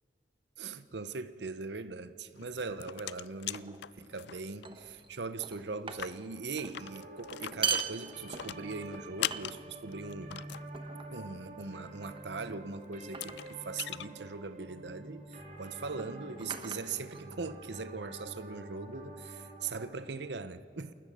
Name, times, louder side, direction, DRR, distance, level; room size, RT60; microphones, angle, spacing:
voice 1, 0.6-10.5 11.1-20.9, right 4 dB, 70° right, 0.8 m, -40 dB
sound 1, 2.4-4.7 5.0-5.1 5.4-5.5 5.8-10.7 12.5-12.6 13.0-14.1, left 12 dB, 70° left, 0.4 m, -40 dB
sound 2, 3.5-3.8 4.6-5.1 5.4-6.3 6.6-6.8 7.4-8.8 9.3-9.9 10.7-11.2 12.1-12.5 13.1-13.5 14.7-14.9 15.8-17.6, right 7 dB, 30° right, 1.1 m, -39 dB
sound 3, 6.8-19.9, right 1 dB, 45° right, 3.1 m, -48 dB
28.0 x 14.0 x 6.7 m
head